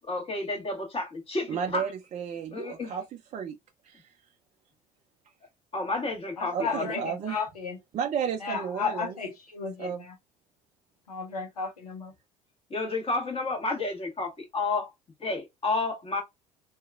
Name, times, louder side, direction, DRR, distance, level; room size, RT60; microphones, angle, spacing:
voice 1, 0.1-1.9 2.5-3.0 5.7-7.0 12.7-14.9 15.2-16.2, left 3 dB, 30° left, 1.4 m, -31 dB
voice 2, 1.5-3.0 3.3-3.6 3.8-4.0 6.5-7.4 7.9-9.1 9.8-10.1, right 7 dB, 40° right, 0.5 m, -32 dB
voice 3, 6.4-7.8 8.4-10.2 11.1-12.1, left 5 dB, 85° left, 0.7 m, -34 dB
2.8 x 2.4 x 2.4 m
figure-of-eight pair, 60°, 19 cm